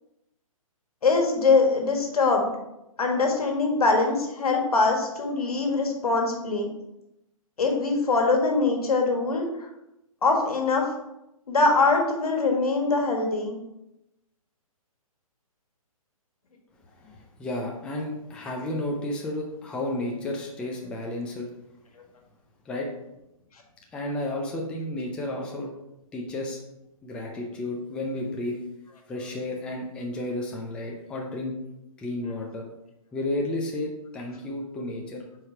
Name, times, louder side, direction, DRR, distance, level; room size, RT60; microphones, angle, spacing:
voice 1, 1.0-2.5 3.0-6.7 7.6-9.4 10.2-10.8 11.5-13.6, left 3 dB, 85° left, 2 dB, 1.6 m, -23 dB
voice 2, 16.9-21.5 22.6-22.9 23.9-25.7 26.1-26.6 27.0-28.6 29.1-31.5 32.0-32.6 33.1-35.2, left 1 dB, 5° left, -1 dB, 0.4 m, -32 dB
4.8 x 4.7 x 4.3 m, 0.88 s
hypercardioid pair, 155°, 19 cm